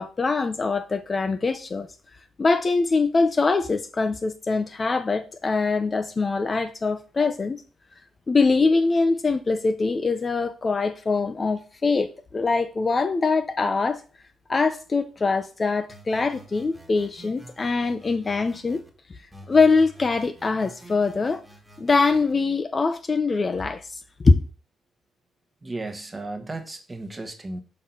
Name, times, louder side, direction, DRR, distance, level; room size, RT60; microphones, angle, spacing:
voice 1, 0.0-1.9 2.4-7.6 8.3-14.0 14.5-18.8 19.5-21.4 21.8-24.4, left 4 dB, 30° left, 0.6 m, -23 dB
sound 1, 15.9-18.9 19.3-22.3, right 1 dB, 5° right, 1.4 m, -48 dB
voice 2, 25.6-27.6, right 2 dB, 20° right, 1.1 m, -34 dB
5.4 x 3.8 x 5.7 m
cardioid pair, 90°, 0 cm